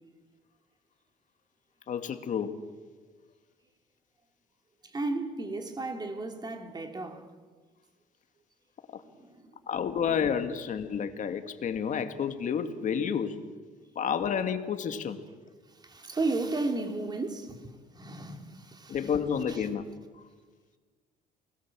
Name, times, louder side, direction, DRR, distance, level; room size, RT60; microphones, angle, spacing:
voice 1, 1.9-2.6 8.9-9.0 9.7-13.4 14.0-15.2 18.9-19.9, left 7 dB, 50° left, 2.1 m, -30 dB
voice 2, 4.8-7.3 9.0-9.4 15.7-19.1 19.5-19.7, right 2 dB, 25° right, 3.2 m, -34 dB
29.5 x 20.5 x 7.6 m
cardioid pair, 110°, 17 cm